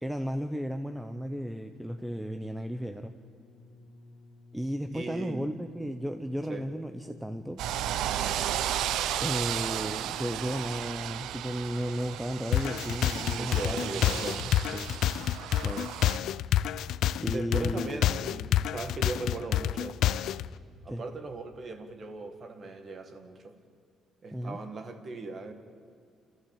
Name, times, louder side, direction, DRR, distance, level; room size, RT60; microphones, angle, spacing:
voice 1, 0.0-3.1 4.5-7.6 9.2-14.9 15.6-16.0 17.2-18.0 20.9-21.0 24.3-24.6, equal, 5° right, 7 dB, 0.7 m, -34 dB
sound 1, 1.1-11.2 12.0-12.1, left 3 dB, 85° left, 2.0 m, -55 dB
voice 2, 4.9-5.5 6.5-6.7 13.2-14.6 17.3-20.0 20.8-23.5 24.2-25.5, right 3 dB, 30° right, 8 dB, 1.8 m, -39 dB
sound 2, 7.6-16.2, right 11 dB, 80° right, 0.8 m, -34 dB
sound 3, 12.5-20.5, left 11 dB, 65° left, 0.5 m, -28 dB
29.5 x 14.0 x 8.9 m, 2.4 s
cardioid pair, 175°, 0 cm